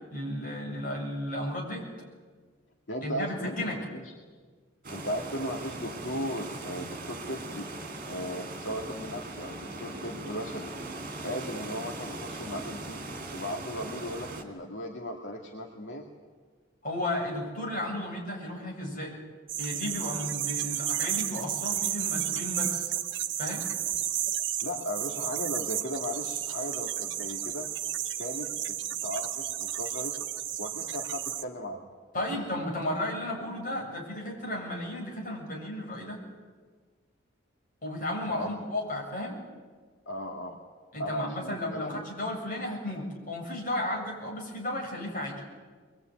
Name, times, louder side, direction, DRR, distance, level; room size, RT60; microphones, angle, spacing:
voice 1, 0.1-1.9 3.0-3.8 16.8-19.2 19.6-22.9 23.4-23.6 32.1-36.2 37.8-39.4 40.9-45.4, left 1 dB, 40° left, -1 dB, 7.4 m, -34 dB
voice 2, 2.9-4.1 4.9-7.6 8.0-10.7 11.2-13.0 13.3-16.0 24.6-27.7 28.2-30.2 30.6-31.9 32.3-32.5 38.3-38.5 40.1-40.6 41.0-42.0, equal, 65° left, 1 dB, 2.2 m, -37 dB
sound 1, 4.8-14.4, right 2 dB, 40° right, 3.0 m, -40 dB
sound 2, 19.5-31.4, right 11 dB, 65° right, 1.0 m, -32 dB
23.5 x 22.0 x 9.3 m, 1.5 s
head